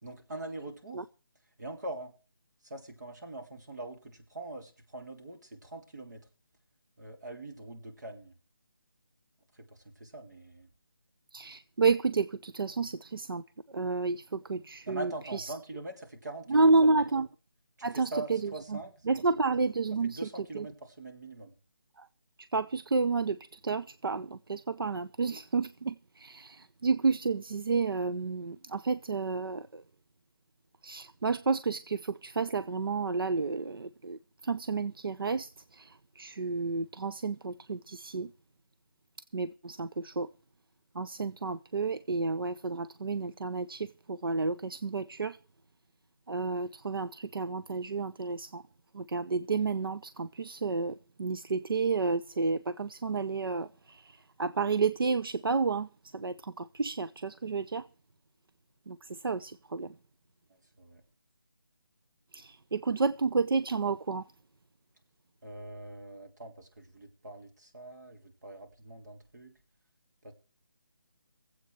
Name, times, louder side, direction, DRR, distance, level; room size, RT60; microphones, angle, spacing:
voice 1, 0.0-1.1 1.6-2.1 2.6-6.3 7.0-8.4 9.5-10.7 14.9-17.0 17.8-19.2 20.0-21.5 60.5-61.0 65.4-69.6 70.2-70.3, right 2 dB, 50° right, 3.2 m, -43 dB
voice 2, 11.3-13.4 13.7-15.1 15.4-15.5 16.5-17.3 17.8-18.4 19.1-20.2 20.5-20.7 22.0-22.1 22.5-29.8 30.8-38.3 39.3-40.3 40.9-45.4 46.3-48.6 48.9-55.9 56.1-57.8 58.9-59.9 62.3-64.2, right 4 dB, 80° right, 0.6 m, -30 dB
21.0 x 8.2 x 4.6 m
figure-of-eight pair, 175°, 12 cm